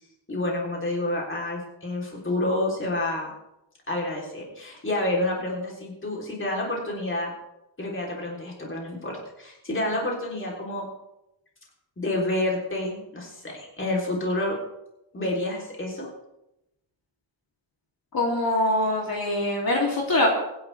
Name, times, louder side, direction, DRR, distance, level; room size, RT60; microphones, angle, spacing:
voice 1, 0.3-3.3 3.9-7.3 7.8-10.9 12.0-14.6 15.1-16.1, left 1 dB, 25° left, -2 dB, 3.6 m, -29 dB
voice 2, 18.1-20.3, left 1 dB, 50° left, -2 dB, 3.1 m, -23 dB
24.0 x 10.5 x 3.4 m, 0.89 s
wide cardioid pair, 180°, 45 cm